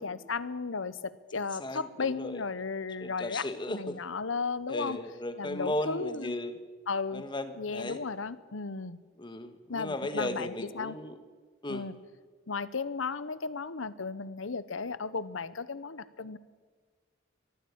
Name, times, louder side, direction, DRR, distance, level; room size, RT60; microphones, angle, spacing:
voice 1, 0.0-5.0 5.4-6.4 6.9-7.2 7.6-9.0 9.7-11.0 11.7-12.0 12.5-16.4, left 4 dB, 80° left, 16 dB, 0.9 m, -35 dB
voice 2, 1.6-2.4 3.0-4.0 4.7-6.5 7.1-8.0 9.2-11.1 11.6-11.9, left 1 dB, 25° left, 10 dB, 1.5 m, -36 dB
22.5 x 14.5 x 8.7 m, 1.5 s
head